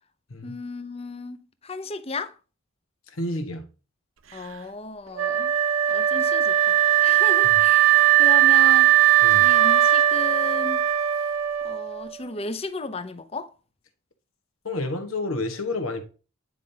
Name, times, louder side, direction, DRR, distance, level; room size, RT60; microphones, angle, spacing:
voice 1, 0.4-2.3 4.3-5.5 5.9-8.9 9.4-10.9 11.6-13.5, left 3 dB, 30° left, 0.6 m, -35 dB
voice 2, 3.1-3.6 9.2-9.5 14.6-16.0, left 2 dB, 90° left, 1.4 m, -29 dB
Wind instrument woodwind instrument, 5.2-12.2, right 13 dB, 75° right, 0.7 m, -19 dB
9.5 x 5.2 x 2.8 m
head